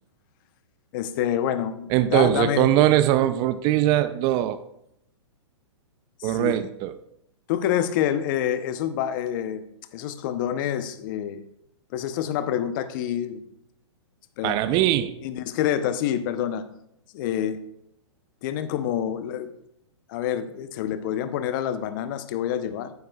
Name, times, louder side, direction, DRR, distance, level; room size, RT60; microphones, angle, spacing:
voice 1, 0.9-2.7 6.2-6.7 7.5-9.7 9.9-11.4 11.9-13.4 14.4-14.9 15.2-16.6 17.1-17.6 18.4-19.5 20.1-22.9, left 10 dB, 45° left, 11 dB, 0.7 m, -27 dB
voice 2, 1.9-4.6 6.2-6.9 14.4-15.1, right 13 dB, 30° right, 13 dB, 0.4 m, -21 dB
11.0 x 9.5 x 2.3 m, 0.77 s
hypercardioid pair, 130°, 15 cm